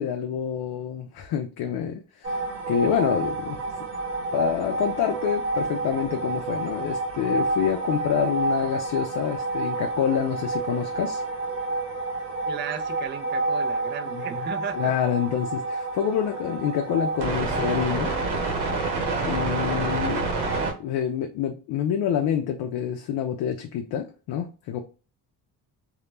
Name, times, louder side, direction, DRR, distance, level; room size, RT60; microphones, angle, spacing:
voice 1, 0.0-3.6 4.3-11.2 14.1-14.5 14.7-18.1 19.2-20.3 20.8-24.8, left 9 dB, 65° left, 0.5 m, -27 dB
sound 1, 2.2-20.7, right 3 dB, 80° right, 0.9 m, -28 dB
voice 2, 12.5-14.9 19.5-19.7, right 8 dB, 30° right, 0.4 m, -35 dB
2.2 x 2.0 x 3.1 m
cardioid pair, 95°, 40 cm